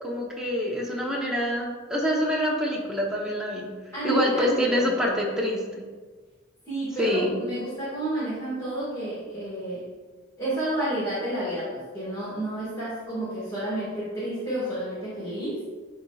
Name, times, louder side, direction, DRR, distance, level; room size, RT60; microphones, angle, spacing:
voice 1, 0.0-3.7 4.0-5.8 7.0-7.4, left 1 dB, 5° right, -3 dB, 1.0 m, -26 dB
voice 2, 3.9-4.9 6.6-9.8 10.4-15.6, right 1 dB, 15° left, -11 dB, 1.9 m, -30 dB
10.5 x 4.0 x 2.4 m, 1.4 s
head